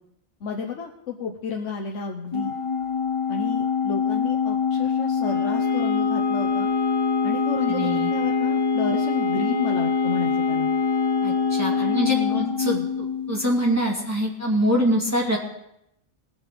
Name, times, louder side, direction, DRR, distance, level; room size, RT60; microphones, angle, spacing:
voice 1, 0.4-2.6 3.3-6.7 7.2-10.7 11.8-12.9, left 5 dB, 85° left, 1 dB, 1.3 m, -32 dB
Organ, 2.3-13.6, left 7 dB, 45° left, 0.4 m, -24 dB
sound 1, 5.2-12.2, right 4 dB, 20° left, 1.1 m, -32 dB
voice 2, 7.7-8.1 11.2-12.8 13.3-15.4, equal, 15° right, -2 dB, 2.2 m, -24 dB
19.5 x 7.7 x 5.1 m, 0.81 s
omnidirectional pair, 1.2 m